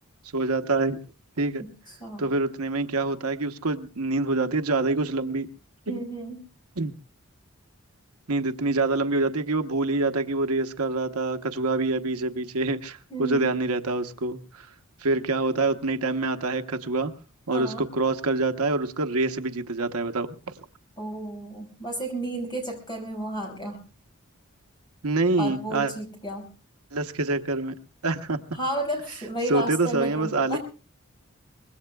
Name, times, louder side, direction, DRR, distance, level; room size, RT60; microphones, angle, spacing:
voice 1, 0.3-1.0 1.4-1.7 2.2-5.5 5.9-6.0 6.8-6.9 8.3-14.7 15.0-17.1 17.5-20.4 25.0-25.9 26.9-27.7 28.0-28.4 29.5-30.6, right 3 dB, 85° right, 7 dB, 1.1 m, -26 dB
voice 2, 1.6-2.2 5.9-6.4 13.1-13.5 17.5-17.9 21.0-23.8 25.4-26.5 28.5-30.6, right 1 dB, 20° left, 1 dB, 5.8 m, -32 dB
24.5 x 21.0 x 2.3 m, 0.35 s
head